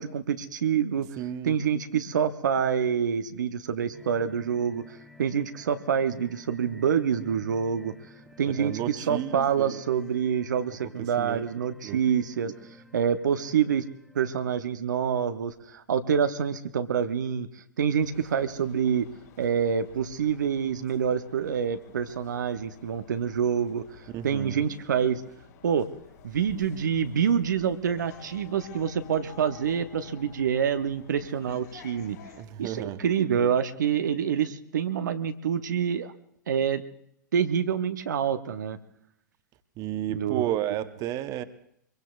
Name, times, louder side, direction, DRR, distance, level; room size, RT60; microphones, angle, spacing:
voice 1, 0.0-1.1 1.4-7.9 8.4-13.8 14.1-19.1 19.4-25.2 25.6-25.9 26.2-32.2 32.6-36.1 36.5-36.8 37.3-38.8 40.1-40.5, right 7 dB, 70° right, 9 dB, 0.7 m, -27 dB
voice 2, 1.2-1.5 8.4-9.7 11.0-11.4 11.8-12.0 24.1-24.6 32.3-33.0 39.8-41.4, right 12 dB, 35° right, 11 dB, 0.9 m, -32 dB
sound 1, 3.9-14.4, left 2 dB, ahead, 1.9 m, -53 dB
sound 2, 18.0-32.4, left 7 dB, 60° left, 3.3 m, -51 dB
24.0 x 22.5 x 2.4 m, 0.72 s
figure-of-eight pair, 105°, 10 cm